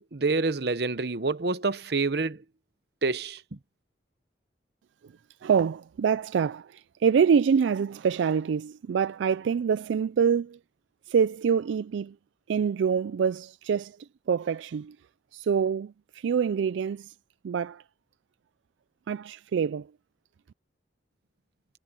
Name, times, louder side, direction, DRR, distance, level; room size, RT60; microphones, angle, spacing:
voice 1, 0.0-2.4 3.0-3.6, right 3 dB, 60° right, 0.9 m, -27 dB
voice 2, 5.4-10.6 11.1-12.1 12.5-14.0 14.3-15.0 15.3-17.1 17.4-17.8 19.1-19.9, right 6 dB, 85° right, 0.3 m, -25 dB
head